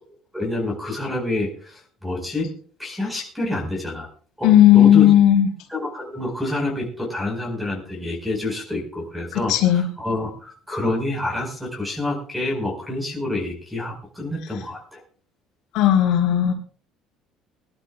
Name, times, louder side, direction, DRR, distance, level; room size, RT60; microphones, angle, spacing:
voice 1, 0.3-2.5 2.8-4.1 4.4-5.1 5.7-15.0, left 2 dB, 5° right, 2 dB, 4.6 m, -28 dB
voice 2, 4.4-5.5 9.3-9.9 15.7-16.5, left 11 dB, 70° left, 2 dB, 3.8 m, -14 dB
23.5 x 12.0 x 2.3 m, 0.42 s
cardioid pair, 160°, 0 cm